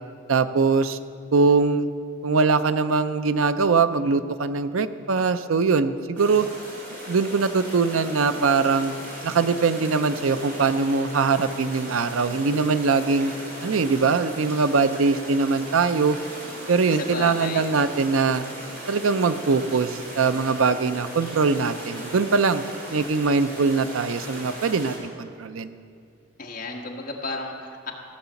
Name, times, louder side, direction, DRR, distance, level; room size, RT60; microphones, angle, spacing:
voice 1, 0.3-1.0 1.3-1.9 2.2-6.5 7.1-9.0 9.2-13.3 13.6-16.2 16.7-18.4 18.9-22.6 22.9-25.7, right 4 dB, 85° right, 12 dB, 0.5 m, -22 dB
sound 1, 6.2-25.0, right 1 dB, 45° right, 3.7 m, -37 dB
voice 2, 16.9-17.6 26.4-27.9, left 3 dB, 40° left, -1 dB, 1.5 m, -33 dB
16.0 x 6.6 x 7.1 m, 2.3 s
head